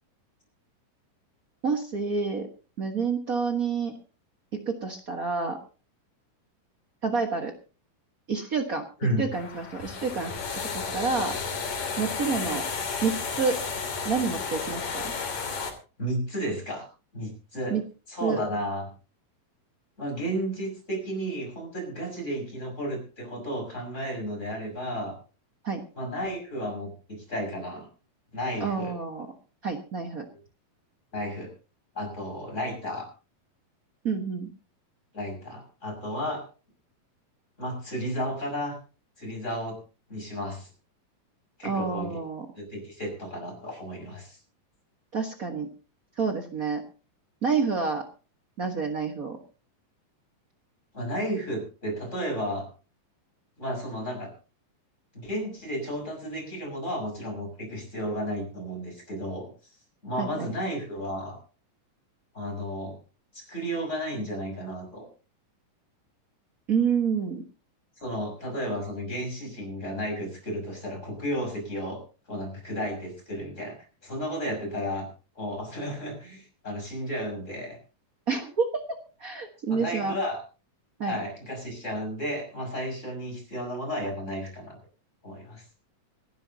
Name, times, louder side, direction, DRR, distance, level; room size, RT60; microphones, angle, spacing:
voice 1, 1.6-2.5 2.8-4.0 4.5-5.6 7.0-7.5 8.3-8.8 9.2-10.3 10.7-11.3 12.0-12.7 13.0-13.6 14.0-15.1 17.7-17.8 18.2-18.4 25.6-25.8 28.6-29.3 29.6-30.2 34.0-34.5 41.6-42.5 45.1-45.7 46.2-46.8 47.4-48.0 48.6-49.4 60.2-60.5 66.7-67.4 78.3-78.8 79.2-80.2 81.0-81.2, right 5 dB, 80° right, 4 dB, 0.7 m, -28 dB
sound 1, 9.3-15.7, left 5 dB, 60° left, 4.3 m, -32 dB
voice 2, 16.0-16.9 17.1-17.8 18.1-18.9 20.0-25.1 25.9-27.9 28.3-28.9 30.3-30.4 31.1-31.5 31.9-33.1 35.1-36.4 37.6-38.8 39.2-39.8 40.1-40.7 41.6-42.2 42.6-44.4 50.9-52.6 53.6-54.3 55.1-59.5 60.0-61.4 62.3-62.9 63.3-65.1 68.0-72.0 72.3-75.1 75.3-77.8 79.7-80.4 81.0-84.8 85.2-85.6, equal, 20° left, 2 dB, 6.6 m, -33 dB
25.5 x 12.5 x 2.8 m, 0.35 s
omnidirectional pair, 4.0 m